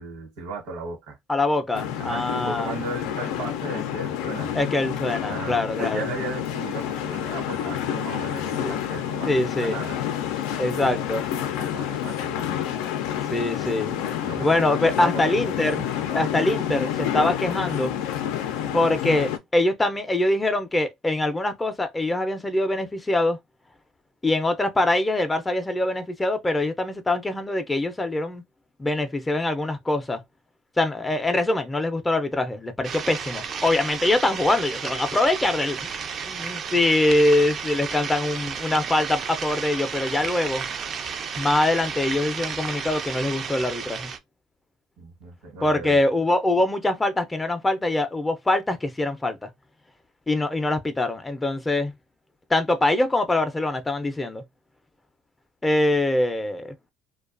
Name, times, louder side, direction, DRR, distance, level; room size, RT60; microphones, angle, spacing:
voice 1, 0.0-1.2 2.0-4.5 5.2-10.0 10.7-11.0 11.3-12.6 14.2-15.4 45.0-46.0, right 3 dB, 80° right, 1.1 m, -36 dB
voice 2, 1.3-2.7 4.6-6.0 8.6-8.7 9.3-9.8 10.6-11.2 13.3-14.0 14.4-17.9 18.7-23.4 24.2-28.4 28.8-30.2 30.8-40.7 41.3-44.1 45.6-49.5 50.3-51.9 52.5-54.4 55.6-56.7, left 2 dB, 15° left, 0.4 m, -24 dB
sound 1, 1.7-19.4, left 10 dB, 90° left, 0.4 m, -29 dB
sound 2, 32.8-44.2, right 6 dB, 45° right, 0.4 m, -32 dB
2.4 x 2.2 x 2.4 m
supercardioid pair, 100°, 0 cm